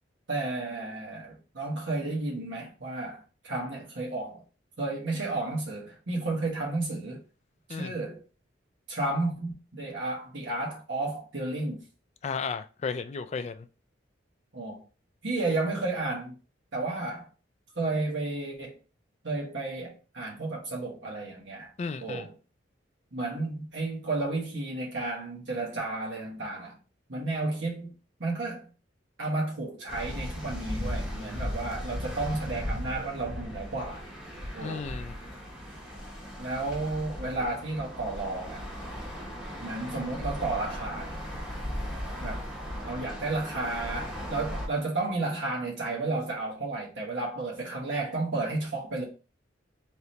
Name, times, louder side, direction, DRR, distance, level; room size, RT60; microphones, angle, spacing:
voice 1, 0.3-4.4 4.8-7.2 7.7-8.2 8.9-11.8 14.5-14.8 15.2-16.4 16.7-17.3 17.7-18.8 19.2-21.7 22.0-22.3 23.1-26.8 27.1-27.9 28.2-28.7 29.2-34.0 34.5-34.9 36.4-38.7 39.6-41.2 42.2-42.4 42.9-49.0, right 2 dB, 70° right, 1.4 m, -32 dB
voice 2, 12.2-13.7 21.8-22.3 34.6-35.1, left 5 dB, 35° left, 0.3 m, -34 dB
sound 1, 29.9-44.7, equal, 5° right, 0.9 m, -37 dB
3.7 x 3.2 x 2.9 m
head